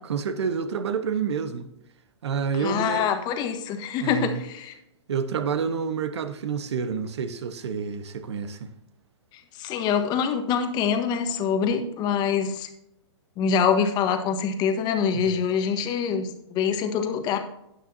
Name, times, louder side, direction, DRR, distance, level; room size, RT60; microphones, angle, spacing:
voice 1, 0.0-1.7 2.2-3.1 4.0-4.4 5.1-8.7 15.1-15.3, right 6 dB, 70° right, 1.3 m, -28 dB
voice 2, 2.6-4.7 9.6-12.7 13.4-17.4, left 7 dB, 30° left, 1.4 m, -25 dB
17.0 x 6.2 x 2.8 m
hypercardioid pair, 125°, 15 cm